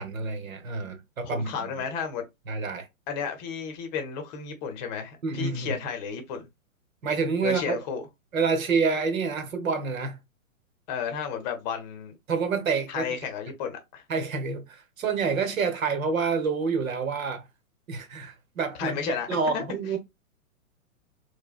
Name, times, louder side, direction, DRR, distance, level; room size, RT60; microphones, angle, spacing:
voice 1, 0.0-1.7 2.5-2.9 5.2-5.8 7.0-7.8 8.3-10.2 12.3-13.2 14.1-17.4 17.9-19.0 19.3-20.0, right 5 dB, 70° right, 1.1 m, -28 dB
voice 2, 1.2-2.2 3.1-6.5 7.4-8.0 10.9-12.1 12.9-14.0 18.8-19.3 19.5-19.6, left 6 dB, 30° left, 0.8 m, -32 dB
4.6 x 2.2 x 2.4 m
hypercardioid pair, 120°, 42 cm